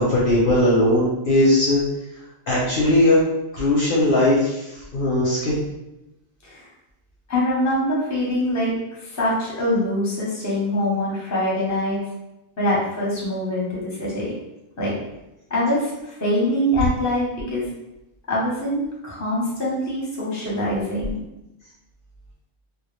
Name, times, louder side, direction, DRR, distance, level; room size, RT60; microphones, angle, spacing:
voice 1, 0.0-1.8 2.5-3.2 3.5-5.6, left 1 dB, 60° left, -5 dB, 0.6 m, -19 dB
voice 2, 7.3-12.1 12.6-14.3 14.8-14.9 15.5-17.7 18.3-21.2, left 1 dB, 20° left, -5 dB, 0.5 m, -24 dB
2.1 x 2.1 x 3.0 m, 0.93 s
omnidirectional pair, 1.2 m